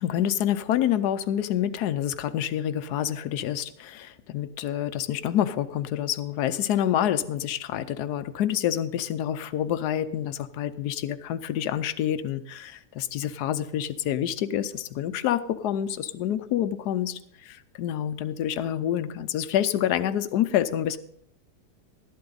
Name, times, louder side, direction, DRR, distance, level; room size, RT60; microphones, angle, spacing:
voice 1, 0.0-17.2 17.5-21.0, left 11 dB, 80° left, 12 dB, 1.2 m, -27 dB
13.0 x 11.5 x 3.9 m, 0.72 s
omnidirectional pair, 1.7 m